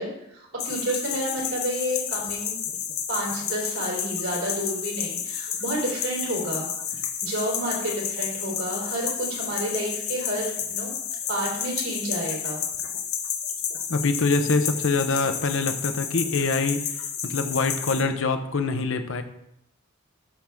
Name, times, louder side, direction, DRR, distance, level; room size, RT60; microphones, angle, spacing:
voice 1, 0.0-2.6 3.1-10.9 11.3-12.6, right 1 dB, 75° right, -3 dB, 3.7 m, -30 dB
sound 1, 0.6-18.0, left 8 dB, 85° left, 1.2 m, -31 dB
voice 2, 13.9-16.8 17.2-19.2, left 3 dB, 65° left, 7 dB, 0.8 m, -24 dB
12.5 x 6.0 x 3.6 m, 0.81 s
head